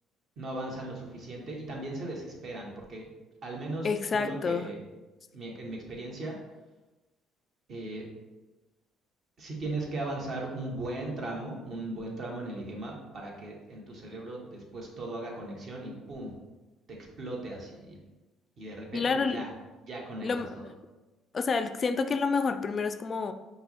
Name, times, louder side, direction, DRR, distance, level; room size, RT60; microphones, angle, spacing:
voice 1, 0.4-3.1 3.4-4.8 5.3-6.4 7.7-8.1 9.4-16.3 17.2-18.0 18.6-19.5 19.8-20.3 20.5-20.6, right 2 dB, 55° right, -1 dB, 1.3 m, -38 dB
voice 2, 3.8-4.7 18.9-19.4 20.2-20.6 21.3-23.3, left 4 dB, 40° left, 10 dB, 0.3 m, -28 dB
5.4 x 2.2 x 4.2 m, 1.1 s
supercardioid pair, 80°, 0 cm